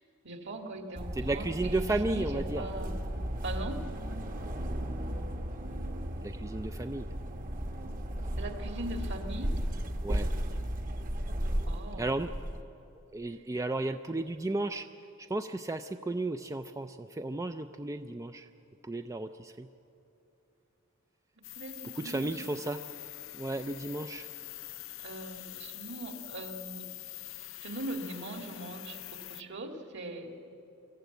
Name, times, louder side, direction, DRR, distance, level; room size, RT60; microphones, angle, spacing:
voice 1, 0.2-3.0 3.4-3.9 8.4-9.6 11.6-12.1 21.5-22.4 25.0-27.0 27.6-30.4, right 1 dB, 55° right, 4 dB, 2.2 m, -40 dB
sound 1, 1.0-12.6, equal, 40° right, 1.2 m, -35 dB
voice 2, 1.2-2.7 6.2-7.1 10.0-10.3 12.0-12.3 13.1-14.9 15.2-18.5 18.8-19.7 22.0-22.9 23.3-24.3, right 2 dB, 15° right, 7 dB, 0.4 m, -34 dB
sound 2, 21.4-29.4, left 15 dB, 65° left, 0.6 m, -45 dB
24.0 x 14.5 x 9.3 m, 2.9 s
head